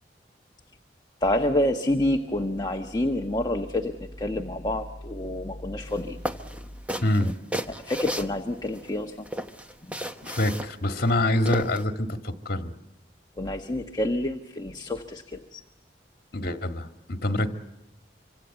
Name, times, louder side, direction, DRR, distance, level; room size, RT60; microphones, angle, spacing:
voice 1, 1.2-6.2 7.2-7.3 7.7-9.3 9.9-10.0 13.4-15.6, left 1 dB, 25° left, 4 dB, 1.2 m, -28 dB
sound 1, 5.9-6.0 6.3-8.9 9.3-11.8, equal, 10° right, 1.1 m, -34 dB
voice 2, 7.0-7.3 10.2-12.7 16.3-17.6, left 1 dB, 55° left, 6 dB, 1.8 m, -26 dB
26.5 x 25.5 x 8.2 m, 0.89 s
head